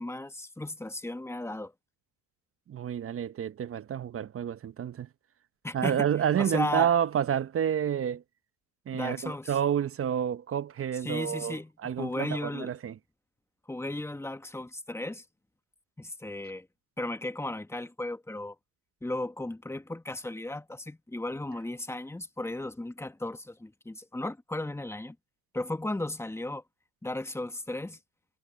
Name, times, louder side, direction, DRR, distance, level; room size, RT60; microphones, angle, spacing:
voice 1, 0.0-1.7 5.6-6.1 6.4-6.9 8.9-9.5 11.0-11.7 12.0-12.7 13.7-15.2 16.0-16.7 17.0-18.5 19.0-25.2 25.5-26.6 27.0-28.0, left 2 dB, 5° left, 1.6 m, -35 dB
voice 2, 2.7-5.1 5.7-8.2 8.9-12.9, right 9 dB, 35° right, 0.9 m, -29 dB
supercardioid pair, 95°, 37 cm